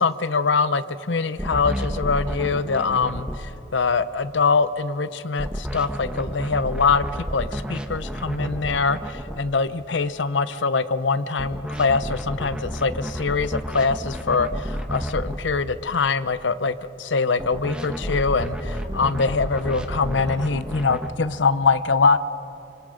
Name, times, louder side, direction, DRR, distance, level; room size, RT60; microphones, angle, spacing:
voice 1, 0.0-7.1 7.3-22.2, left 4 dB, 80° left, 14 dB, 0.7 m, -23 dB
sound 1, 1.4-3.4 5.4-9.4 11.4-15.4 17.4-21.1, equal, 5° right, 1.1 m, -30 dB
26.0 x 25.5 x 5.1 m, 2.9 s
head